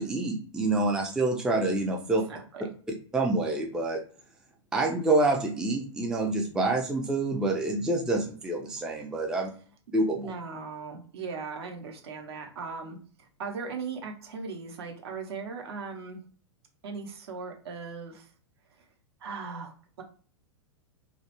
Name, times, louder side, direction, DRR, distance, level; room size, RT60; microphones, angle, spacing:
voice 1, 0.0-2.2 3.1-4.0 4.7-9.5 9.9-10.3, right 2 dB, 5° right, 0 dB, 0.3 m, -27 dB
voice 2, 2.3-2.7 10.2-16.2 16.8-18.3 18.8-18.9 19.2-20.0, right 4 dB, 60° right, 3 dB, 0.7 m, -38 dB
2.3 x 2.0 x 2.9 m, 0.43 s
figure-of-eight pair, 100°, 15 cm